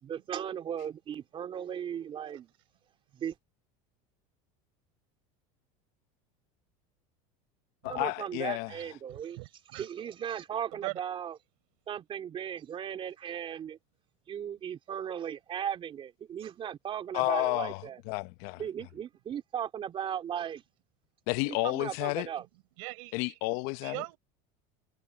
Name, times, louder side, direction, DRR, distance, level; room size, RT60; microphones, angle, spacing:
voice 1, 0.0-2.5 3.1-3.3 7.9-9.4 9.7-11.4 11.9-13.8 14.3-18.0 18.6-20.6 21.5-22.4, right 9 dB, 30° right, 3.1 m, -37 dB
voice 2, 7.8-8.7 17.1-18.6 21.3-22.3 23.1-24.0, left 23 dB, 65° left, 0.8 m, -31 dB
voice 3, 9.1-9.9 10.8-11.0 22.8-23.4 23.8-24.2, right 31 dB, 75° right, 4.0 m, -40 dB
supercardioid pair, 135°, 17 cm